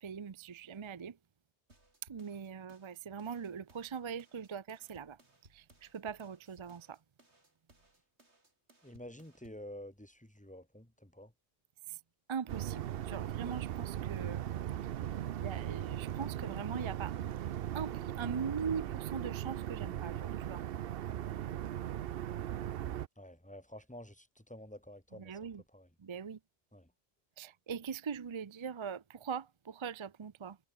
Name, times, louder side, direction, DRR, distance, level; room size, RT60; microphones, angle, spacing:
voice 1, 0.0-1.2 2.1-5.2 5.5-7.0 11.9-12.0 12.3-14.5 15.4-17.1 17.7-20.6 25.1-25.6 26.0-26.4 27.4-30.6, right 6 dB, 40° right, 0.5 m, -41 dB
sound 1, 1.7-9.7, right 2 dB, 85° right, 5.1 m, -65 dB
voice 2, 8.8-11.3 23.2-25.9 26.7-26.9, left 1 dB, 5° left, 2.8 m, -50 dB
sound 2, 12.5-23.1, right 11 dB, 65° right, 0.8 m, -38 dB
omnidirectional pair, 1.1 m